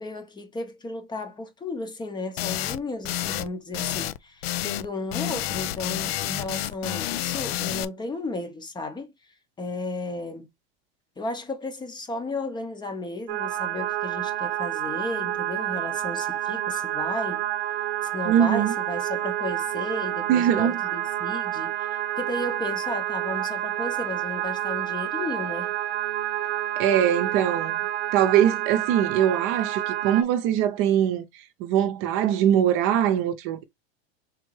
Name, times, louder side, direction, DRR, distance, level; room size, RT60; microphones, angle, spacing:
voice 1, 0.0-10.5 11.2-17.4 18.0-25.7, left 2 dB, 15° left, 0.7 m, -34 dB
sound 1, 2.4-2.8 3.0-3.5 3.7-4.9 5.1-7.8, left 14 dB, 85° left, 0.5 m, -29 dB
sound 2, 13.3-30.2, right 12 dB, 80° right, 0.7 m, -29 dB
voice 2, 18.3-18.7 20.3-20.8 26.8-27.8 28.1-31.2 31.6-33.6, right 10 dB, 45° right, 0.7 m, -22 dB
3.7 x 3.3 x 3.1 m
supercardioid pair, 135°, 30 cm